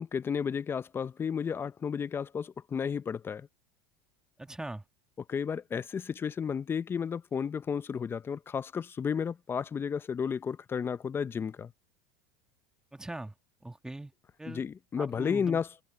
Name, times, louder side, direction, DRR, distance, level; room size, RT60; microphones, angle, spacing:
voice 1, 0.0-3.5 5.3-11.7 14.5-15.7, left 6 dB, 25° left, 0.7 m, -32 dB
voice 2, 4.4-4.8 12.9-13.3 13.6-14.1 14.4-14.6 15.0-15.6, right 2 dB, 5° right, 1.8 m, -41 dB
supercardioid pair, 110°, 10 cm